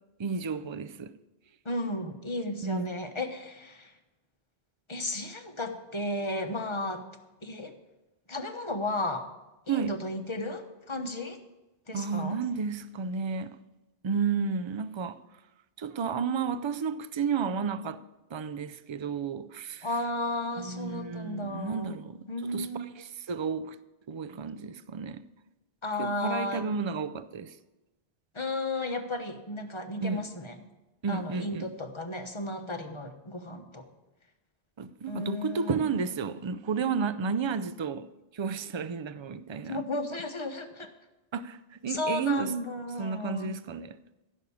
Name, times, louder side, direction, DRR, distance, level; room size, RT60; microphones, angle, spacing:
voice 1, 0.2-1.2 2.6-3.0 9.7-10.0 11.9-13.6 14.0-15.2 15.8-18.0 18.3-19.9 20.6-23.8 24.1-25.3 26.0-27.5 30.0-30.2 31.0-31.7 34.8-39.8 41.3-41.6 41.8-42.5 43.0-44.0, right 5 dB, 45° right, 0.4 m, -32 dB
voice 2, 1.6-3.9 4.9-7.0 7.4-7.7 8.3-9.3 9.7-11.4 11.9-12.4 19.8-22.0 22.3-22.9 25.8-26.6 28.3-30.6 31.1-33.9 35.1-35.9 39.7-40.9 41.9-43.5, left 1 dB, 25° left, 1.1 m, -34 dB
15.5 x 6.4 x 7.1 m
omnidirectional pair, 1.1 m